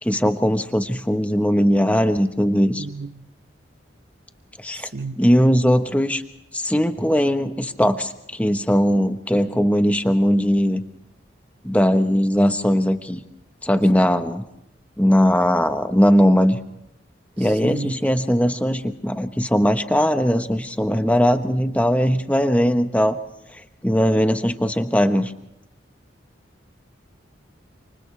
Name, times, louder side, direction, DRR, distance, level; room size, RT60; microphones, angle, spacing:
voice 1, 0.0-2.9 4.6-4.9 5.2-6.2 6.5-10.8 11.6-13.2 13.6-14.4 15.0-16.6 17.4-23.2 23.5-25.3, equal, 10° left, 1.1 m, -19 dB
voice 2, 2.8-3.3 4.7-5.4 13.9-14.1 17.4-18.0, right 3 dB, 60° right, 0.8 m, -34 dB
29.5 x 27.5 x 3.4 m
head